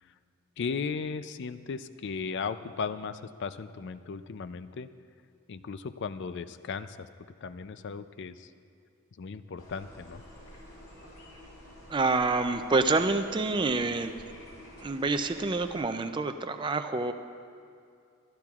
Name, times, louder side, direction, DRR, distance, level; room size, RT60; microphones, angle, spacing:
voice 1, 0.6-4.9 5.5-7.1 7.4-8.5 9.2-10.2, left 5 dB, 55° left, 13 dB, 0.4 m, -36 dB
sound 1, 9.6-15.8, left 1 dB, 80° left, 3.5 m, -50 dB
voice 2, 11.9-14.1 14.8-17.1, right 3 dB, 20° right, 8 dB, 0.4 m, -27 dB
24.0 x 12.0 x 2.4 m, 2.4 s
head